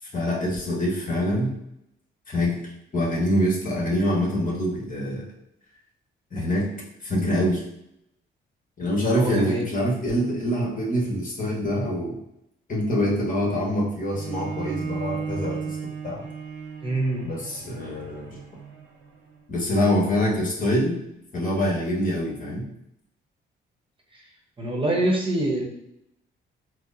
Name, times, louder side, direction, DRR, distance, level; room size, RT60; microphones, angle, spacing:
voice 1, 0.1-1.5 2.3-2.6 2.9-5.2 6.3-6.7 7.0-7.6 8.8-12.2 12.7-15.8 16.0-16.2 17.2-18.3 19.5-21.0 21.3-22.7, equal, 40° left, -3 dB, 1.3 m, -25 dB
voice 2, 9.1-9.6 16.8-17.3 24.6-25.6, right 1 dB, 25° right, -1 dB, 0.9 m, -25 dB
Bowed string instrument, 14.1-19.4, right 6 dB, 65° right, 0.9 m, -35 dB
4.6 x 2.1 x 2.6 m, 0.79 s
cardioid pair, 90°, 20 cm